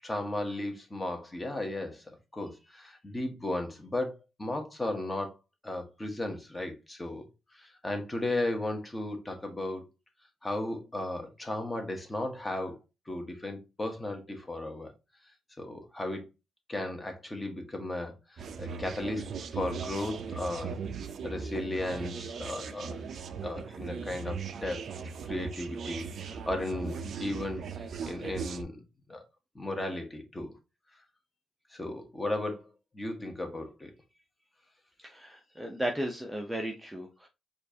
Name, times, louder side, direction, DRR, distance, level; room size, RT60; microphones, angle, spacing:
voice 1, 0.0-4.1 4.4-5.3 5.6-7.3 7.5-9.8 10.4-12.8 13.1-14.9 15.6-16.2 16.7-19.2 19.5-20.8 21.2-23.0 23.4-24.9 25.3-28.8 29.1-29.2 29.5-30.5 31.7-32.7 32.9-33.9, left 1 dB, 20° left, 1.1 m, -35 dB
sound 1, 18.4-28.6, right 5 dB, 60° right, 0.4 m, -39 dB
voice 2, 35.0-37.3, right 1 dB, 10° right, 0.6 m, -35 dB
4.4 x 2.5 x 2.7 m
cardioid pair, 90°, 0 cm